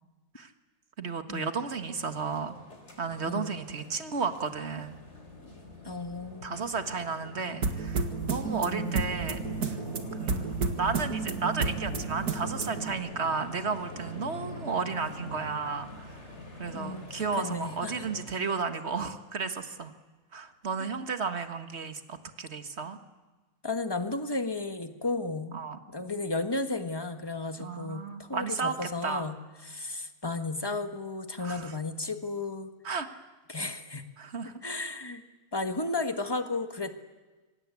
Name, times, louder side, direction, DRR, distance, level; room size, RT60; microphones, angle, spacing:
voice 1, 1.0-2.5 3.0-5.0 6.4-9.8 10.2-16.3 16.6-19.9 20.3-23.0 25.5-25.8 27.6-28.8 29.0-29.3 31.4-31.7 32.8-33.1 34.2-34.6, right 5 dB, 35° right, 9 dB, 1.7 m, -33 dB
sound 1, 1.7-18.2, left 1 dB, 35° left, 4.0 m, -44 dB
voice 2, 3.2-3.6 5.8-6.6 8.4-9.0 16.7-18.1 23.6-25.5 25.9-29.4 29.6-32.7 33.5-34.0 34.6-35.2 35.5-36.9, left 3 dB, 15° left, 8 dB, 1.4 m, -34 dB
sound 2, 7.6-12.9, right 4 dB, 55° right, 2.2 m, -31 dB
26.0 x 24.5 x 8.5 m, 1.2 s
omnidirectional pair, 2.0 m